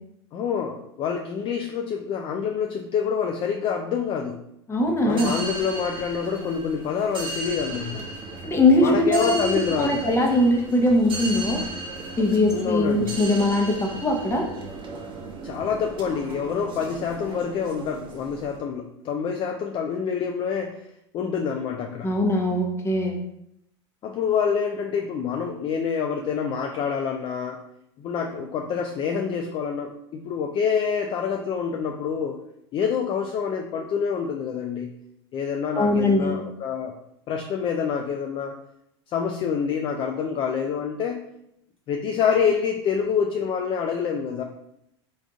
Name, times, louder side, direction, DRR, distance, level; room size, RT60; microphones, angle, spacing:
voice 1, 0.3-4.4 5.0-8.0 8.8-10.1 12.5-13.2 15.4-20.9 21.1-22.1 24.0-27.6 28.0-32.4 32.7-34.9 35.3-37.0 37.3-38.6 39.1-41.2 41.9-44.4, left 6 dB, 35° left, 3 dB, 0.4 m, -27 dB
voice 2, 4.7-5.4 8.4-11.6 12.2-14.5 22.0-23.2 35.8-36.4, left 1 dB, 15° left, 1 dB, 0.8 m, -21 dB
sound 1, 5.1-18.6, right 2 dB, 35° right, 0.9 m, -36 dB
3.6 x 2.6 x 3.5 m, 0.78 s
hypercardioid pair, 90°, 15 cm